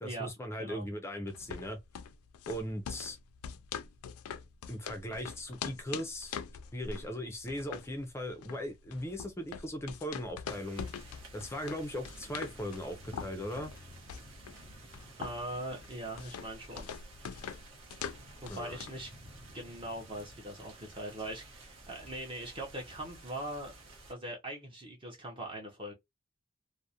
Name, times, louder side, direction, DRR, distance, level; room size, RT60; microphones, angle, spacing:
voice 1, 0.0-1.8 2.5-3.2 4.7-6.4 6.7-10.9 11.3-13.7 18.5-18.8, equal, 10° left, 0.4 m, -38 dB
sound 1, 1.3-19.1, left 7 dB, 80° left, 0.3 m, -44 dB
sound 2, 10.4-24.1, right 1 dB, 55° right, 0.9 m, -52 dB
voice 2, 15.2-16.9 18.4-19.1 19.5-23.7 24.1-25.9, right 1 dB, 25° right, 0.6 m, -41 dB
2.4 x 2.0 x 2.7 m
head